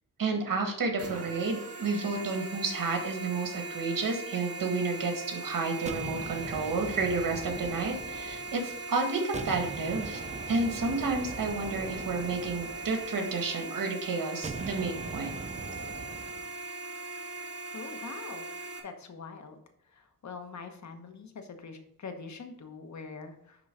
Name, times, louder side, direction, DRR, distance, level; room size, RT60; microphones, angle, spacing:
voice 1, 0.2-10.2 10.5-15.3, right 3 dB, 70° right, 3 dB, 1.8 m, -31 dB
sound 1, 1.0-18.8, right 3 dB, 45° right, 1.6 m, -40 dB
sound 2, 5.9-8.9 9.3-13.6 14.4-16.5, right 4 dB, 20° right, 0.4 m, -41 dB
voice 2, 17.7-18.5 18.8-19.6 20.2-23.6, left 4 dB, 55° left, 6 dB, 1.1 m, -43 dB
10.0 x 3.8 x 4.9 m, 0.75 s
wide cardioid pair, 100°, 34 cm